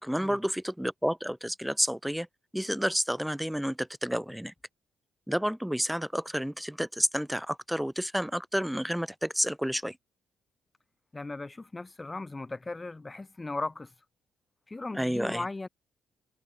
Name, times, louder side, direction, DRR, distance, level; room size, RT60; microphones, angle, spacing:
voice 1, 0.0-2.3 2.5-4.5 5.3-10.0 14.9-15.4, equal, ahead, 1.3 m, -30 dB
voice 2, 11.1-13.9 14.7-15.7, left 3 dB, 20° left, 1.3 m, -37 dB
cardioid pair, 90°, 0 cm